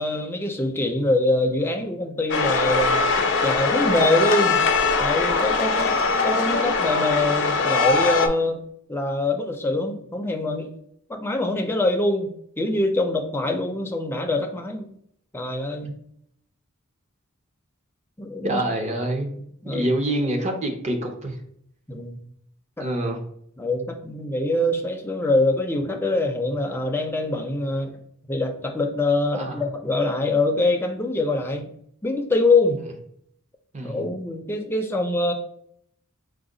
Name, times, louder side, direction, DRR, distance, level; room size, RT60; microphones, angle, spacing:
voice 1, 0.0-4.6 5.0-8.6 8.9-10.7 11.1-14.8 15.3-15.9 18.2-18.6 19.6-19.8 21.9-22.2 22.8-22.9 23.6-28.0 28.3-31.7 32.0-32.8 33.8-35.3, left 2 dB, 10° left, 4 dB, 0.4 m, -24 dB
sound 1, 2.3-8.3, left 4 dB, 60° left, 0.5 m, -21 dB
voice 2, 18.4-21.4 22.8-23.2 29.3-29.6 33.7-34.1, right 1 dB, 35° right, 3 dB, 0.6 m, -26 dB
4.9 x 2.2 x 3.7 m, 0.68 s
head